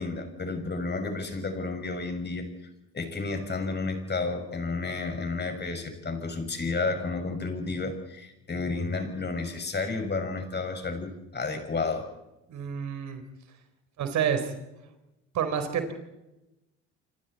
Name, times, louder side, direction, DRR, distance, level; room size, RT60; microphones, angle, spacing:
voice 1, 0.0-2.5 2.9-12.1, left 3 dB, 30° left, 6 dB, 6.2 m, -31 dB
voice 2, 12.5-13.2 14.0-14.5 15.3-15.9, right 8 dB, 55° right, 8 dB, 4.4 m, -28 dB
27.5 x 26.5 x 4.4 m, 0.97 s
hypercardioid pair, 60°, 34 cm